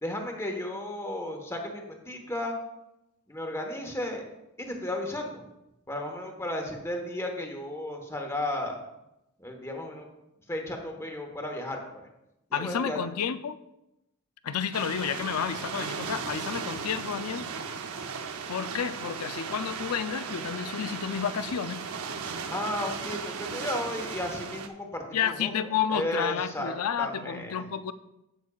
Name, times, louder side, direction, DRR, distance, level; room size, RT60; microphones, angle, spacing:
voice 1, 0.0-2.6 3.3-4.2 4.6-5.4 5.9-8.8 9.4-10.1 10.5-12.1 12.5-13.0 22.5-25.5 25.9-27.7, left 1 dB, 15° left, 1.2 m, -34 dB
voice 2, 12.5-13.6 14.4-17.5 18.5-21.9 25.1-27.9, left 8 dB, 85° left, 0.5 m, -31 dB
sound 1, 14.7-24.7, right 5 dB, 75° right, 0.7 m, -36 dB
15.5 x 6.2 x 2.4 m
head